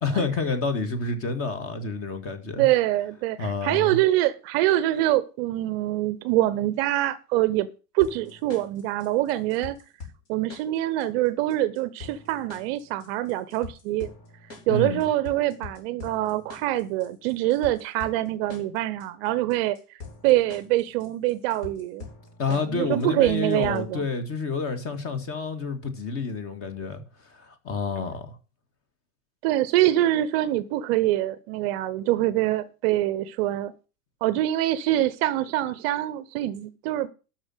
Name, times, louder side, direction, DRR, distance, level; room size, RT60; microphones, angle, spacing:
voice 1, 0.0-2.7 3.4-4.0 14.7-15.1 22.4-27.0 27.3-28.4, left 4 dB, 30° left, 2.0 m, -29 dB
voice 2, 2.6-7.7 7.9-9.8 10.3-14.1 14.7-19.8 20.2-22.1 22.5-24.0 29.4-33.7 34.2-37.1, right 15 dB, 40° right, 0.8 m, -24 dB
sound 1, 8.0-24.0, left 4 dB, 55° left, 4.9 m, -45 dB
12.5 x 4.4 x 7.8 m
figure-of-eight pair, 95°, 47 cm